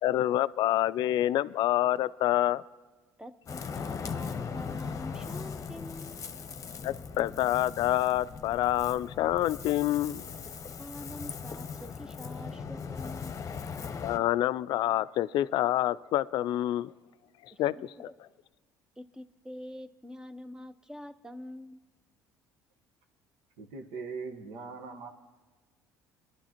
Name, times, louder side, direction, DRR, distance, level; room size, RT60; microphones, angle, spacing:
voice 1, 0.0-2.6 6.8-10.2 14.0-16.9 17.4-18.1, left 13 dB, 60° left, 18 dB, 0.3 m, -27 dB
voice 2, 3.2-6.2 10.8-13.3 17.5-18.1 19.0-21.8, left 1 dB, 10° right, 11 dB, 0.7 m, -46 dB
Ocean, 3.5-14.2, left 5 dB, 40° left, 0.8 m, -39 dB
voice 3, 23.6-25.1, right 4 dB, 80° right, 4 dB, 1.2 m, -40 dB
22.0 x 11.0 x 2.9 m, 1.3 s
supercardioid pair, 70°, 9 cm